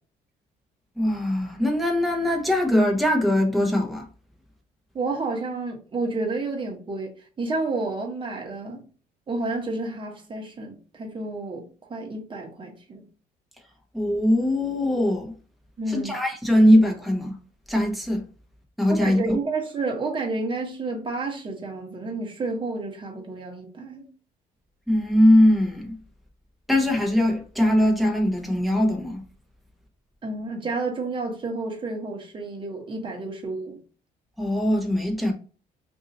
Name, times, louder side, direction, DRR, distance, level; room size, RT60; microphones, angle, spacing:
voice 1, 1.0-4.1 13.9-15.3 15.9-17.3 17.7-18.2 18.8-19.4 24.9-26.0 26.7-29.2 34.4-35.3, left 1 dB, ahead, 1.0 m, -21 dB
voice 2, 4.9-7.1 7.4-8.8 9.3-13.0 15.8-16.2 18.9-24.1 30.2-33.8, right 3 dB, 30° right, 1.2 m, -30 dB
2.7 x 2.6 x 3.9 m
cardioid pair, 110°, 17 cm